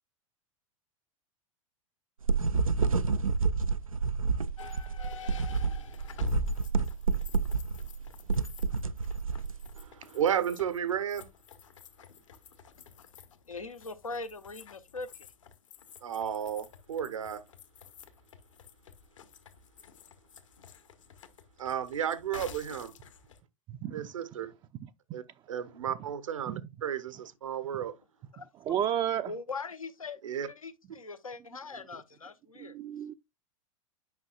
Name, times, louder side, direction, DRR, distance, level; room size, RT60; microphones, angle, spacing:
sound 1, 2.2-9.8, right 4 dB, 85° right, 0.4 m, -29 dB
sound 2, 4.6-23.4, left 7 dB, 65° left, 1.1 m, -47 dB
voice 1, 9.8-11.3 16.0-17.4 21.6-22.9 23.9-24.5 25.1-25.2 25.5-27.9 30.2-30.5, right 9 dB, 70° right, 0.9 m, -33 dB
voice 2, 13.5-15.3 28.3-28.5 29.3-30.2 30.5-32.8, left 3 dB, 80° left, 0.8 m, -41 dB
voice 3, 23.7-24.0 24.8-24.9 26.5-26.6 28.7-29.3 32.6-33.1, right 10 dB, 25° right, 0.4 m, -31 dB
9.5 x 5.5 x 2.2 m
figure-of-eight pair, 90°, 17 cm